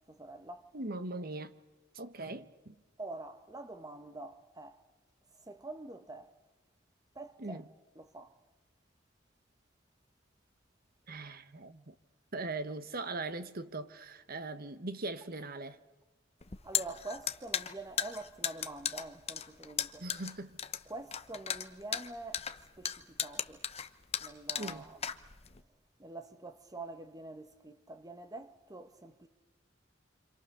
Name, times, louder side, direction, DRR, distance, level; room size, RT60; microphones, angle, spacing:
voice 1, 0.1-0.7 3.0-4.8 5.4-6.3 7.1-7.6 8.0-8.3 16.6-20.0 20.9-22.5 22.8-23.6 24.2-25.0 26.0-29.3, right 2 dB, 20° right, 1.5 m, -46 dB
voice 2, 0.7-1.6 1.9-2.7 7.4-7.7 11.1-11.9 12.3-15.8 20.0-20.6 24.6-24.9, right 2 dB, 50° right, 1.4 m, -40 dB
sound 1, 16.4-25.6, left 8 dB, 35° left, 1.0 m, -36 dB
28.5 x 26.5 x 6.7 m
head